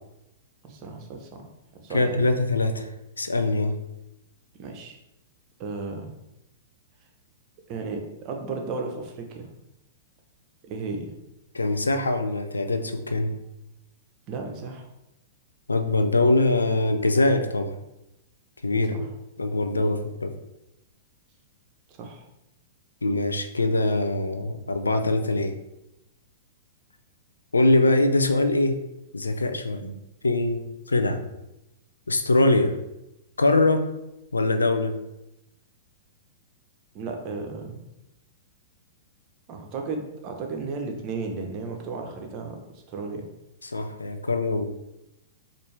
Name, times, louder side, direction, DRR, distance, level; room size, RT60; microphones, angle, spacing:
voice 1, 0.6-2.3 4.5-5.0 5.6-6.2 7.7-9.5 10.6-11.1 14.3-14.9 18.9-19.1 21.9-22.2 36.9-37.8 39.5-42.6 42.9-43.3, right 4 dB, 40° right, 3 dB, 0.7 m, -34 dB
voice 2, 1.9-2.9 3.2-3.7 11.5-13.4 15.7-17.7 18.6-19.0 19.4-20.3 23.0-25.6 27.5-28.8 29.1-30.0 30.2-31.2 32.1-32.8 33.4-33.8 34.3-35.0 43.6-44.7, left 2 dB, 85° left, 8 dB, 0.4 m, -23 dB
4.2 x 2.6 x 3.2 m, 0.90 s
figure-of-eight pair, 105°, 0 cm